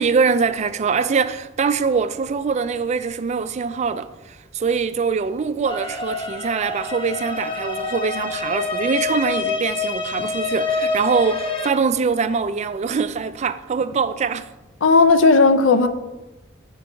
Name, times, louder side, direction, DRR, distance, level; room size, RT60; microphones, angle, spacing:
voice 1, 0.0-14.5, right 5 dB, 35° right, 0.3 m, -23 dB
sound 1, 5.7-11.7, left 4 dB, 25° left, 0.8 m, -26 dB
voice 2, 14.8-15.9, left 4 dB, 75° left, 0.6 m, -14 dB
6.2 x 4.5 x 6.0 m
head